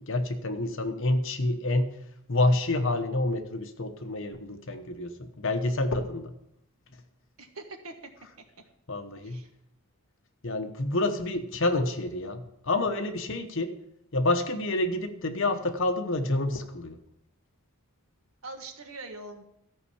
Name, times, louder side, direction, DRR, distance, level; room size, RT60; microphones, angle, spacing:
voice 1, 0.0-1.9 2.3-6.3 8.9-9.5 10.4-13.7 14.1-17.0, left 2 dB, 60° left, 7 dB, 1.0 m, -28 dB
voice 2, 7.4-7.9 9.2-9.5 18.4-19.4, right 2 dB, 70° right, 5 dB, 1.5 m, -42 dB
13.5 x 5.5 x 7.0 m, 0.79 s
head